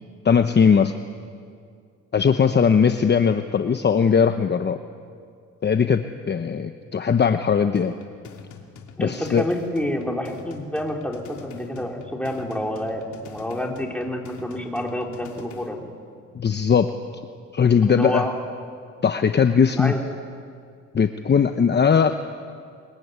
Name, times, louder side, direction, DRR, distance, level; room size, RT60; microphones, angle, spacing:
voice 1, 0.2-0.9 2.1-4.8 5.6-7.9 9.0-9.5 16.3-16.9 17.5-18.3 19.0-19.9 20.9-22.1, left 6 dB, 35° left, 8 dB, 1.0 m, -19 dB
sound 1, 7.8-15.8, left 6 dB, 75° left, 2.8 m, -45 dB
voice 2, 9.0-15.8 17.9-18.3 19.7-20.0, left 1 dB, 5° left, 0 dB, 4.2 m, -28 dB
23.0 x 22.5 x 9.7 m, 2.2 s
cardioid pair, 90°, 30 cm